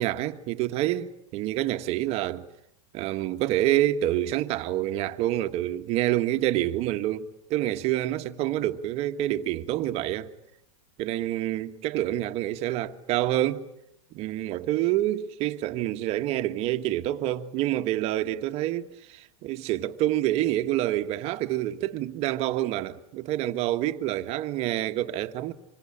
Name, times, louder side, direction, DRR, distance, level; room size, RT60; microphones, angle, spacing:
voice 1, 0.0-2.5 2.9-10.3 11.0-13.7 14.1-25.5, right 14 dB, 40° right, 1.6 m, -27 dB
27.0 x 25.0 x 8.8 m
supercardioid pair, 145°, 16 cm